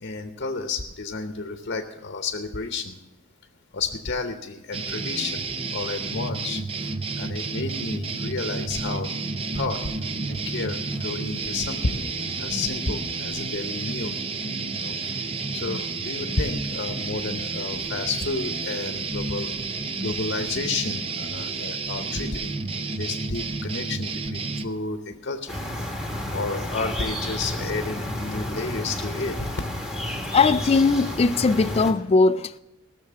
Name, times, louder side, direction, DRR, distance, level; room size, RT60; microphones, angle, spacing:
voice 1, 0.0-3.0 3.7-5.4 5.7-6.6 7.2-9.1 9.5-9.8 10.3-12.0 12.4-14.1 14.7-15.0 15.5-19.5 20.0-22.6 23.0-25.5 26.3-29.5, left 3 dB, 50° left, 0.8 m, -31 dB
sound 1, 4.7-24.7, right 4 dB, 25° right, 0.5 m, -31 dB
sound 2, 6.8-17.8 18.1-19.2 19.5-23.3, right 1 dB, 70° right, 5.4 m, -46 dB
sound 3, 25.5-31.9, left 1 dB, 5° right, 1.4 m, -31 dB
voice 2, 30.3-32.6, left 4 dB, 30° left, 0.3 m, -20 dB
17.0 x 6.7 x 6.8 m
head